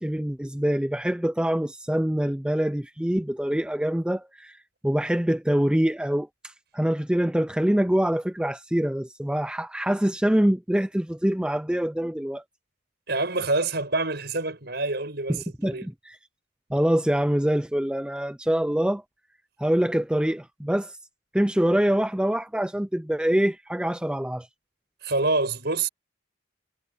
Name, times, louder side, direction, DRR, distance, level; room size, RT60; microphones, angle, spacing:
voice 1, 0.0-4.6 4.8-12.4 15.3-16.2 16.7-19.0 19.6-21.0 21.3-24.5, equal, 5° right, 0.4 m, -25 dB
voice 2, 13.1-15.9 25.0-25.9, right 3 dB, 55° right, 7.9 m, -26 dB
head